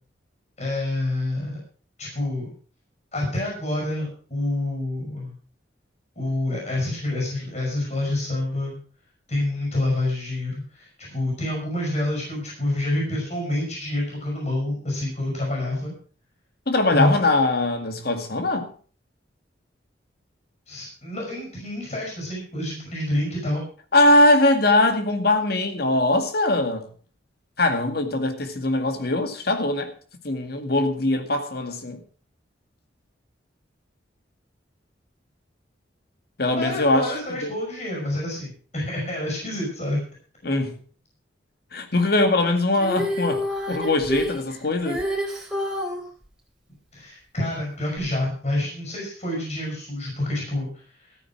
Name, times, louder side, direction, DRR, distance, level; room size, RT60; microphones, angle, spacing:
voice 1, 0.6-1.6 2.0-2.5 3.1-5.3 6.2-8.8 9.3-15.9 16.9-17.1 20.7-23.6 36.5-40.0 46.9-50.7, left 1 dB, 40° left, 6.3 m, -27 dB
voice 2, 16.7-18.7 23.9-26.9 27.6-29.9 30.2-32.0 36.4-37.1 37.4-37.5 40.4-40.8 41.7-45.0, left 2 dB, 55° left, 2.0 m, -21 dB
Female singing, 42.7-46.0 48.0-48.1, left 1 dB, 5° right, 4.0 m, -28 dB
14.5 x 9.3 x 6.0 m
head